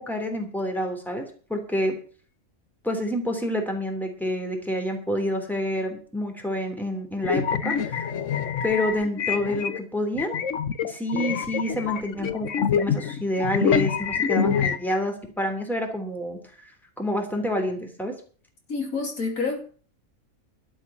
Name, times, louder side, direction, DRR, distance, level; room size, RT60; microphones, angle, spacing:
voice 1, 0.0-2.0 2.8-8.1 8.6-10.3 10.8-16.4 17.0-18.1, left 1 dB, ahead, 3 dB, 3.0 m, -28 dB
sound 1, 7.2-9.8 10.2-14.8, left 7 dB, 65° left, 1.3 m, -26 dB
voice 2, 18.7-19.6, left 4 dB, 85° left, 2 dB, 3.4 m, -28 dB
12.5 x 6.8 x 8.5 m, 0.41 s
omnidirectional pair, 1.4 m